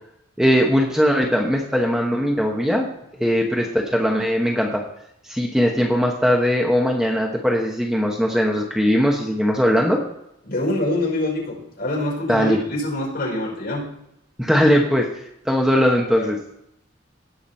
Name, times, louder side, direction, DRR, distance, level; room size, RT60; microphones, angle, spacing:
voice 1, 0.4-2.9 3.2-4.8 5.2-10.0 12.3-12.6 14.4-15.1 15.4-16.4, equal, 5° right, 0 dB, 1.1 m, -19 dB
voice 2, 10.5-13.9 15.7-15.8 16.2-16.3, left 1 dB, 55° left, -4 dB, 5.3 m, -25 dB
17.5 x 6.0 x 4.4 m, 0.78 s
head